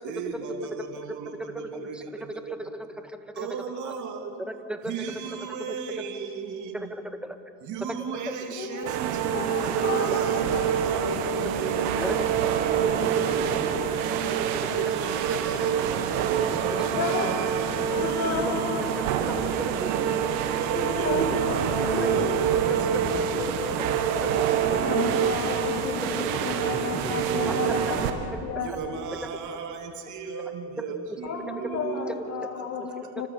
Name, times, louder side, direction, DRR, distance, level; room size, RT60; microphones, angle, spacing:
voice 1, 0.0-2.7 3.3-4.3 4.8-7.0 7.6-9.2 9.6-12.8 13.7-15.9 16.4-19.2 20.5-25.7 27.1-27.9 28.6-32.2 32.9-33.3, right 5 dB, 65° right, 4 dB, 3.2 m, -36 dB
voice 2, 1.7-2.0 2.4-2.9 3.2-3.5 3.9-4.0 4.5-4.9 6.7-7.4 8.3-8.4 9.6-9.7 10.0-10.2 12.0-12.2 12.8-12.9 13.2-13.7 15.4-15.5 15.8-15.9 16.2-16.3 18.4-18.9 19.2-20.3 22.0-22.1 22.4-22.8 26.0-27.1 27.4-27.9 28.7-28.8 29.2-29.3 31.1-31.4 32.1-32.3 32.7-32.9 33.2-33.3, equal, 5° right, 7 dB, 1.8 m, -36 dB
voice 3, 8.6-9.0 9.3-10.6 10.9-11.1 11.8-11.9 16.9-17.3 17.9-19.1 20.7-22.4 24.6-28.7 31.2-33.3, left 5 dB, 55° left, 3 dB, 2.2 m, -33 dB
sound 1, 8.9-28.1, right 8 dB, 80° right, 1.9 m, -26 dB
sound 2, 10.3-10.6 11.0-11.9 12.3-14.4 14.7-14.8 16.5-18.5 20.0-20.2 20.7-21.4 21.7-23.5 23.8-24.0 26.3-26.4 26.7-27.6 27.9-28.2, left 3 dB, 20° left, 2.0 m, -40 dB
29.5 x 13.0 x 8.5 m, 2.5 s
supercardioid pair, 85°, 32 cm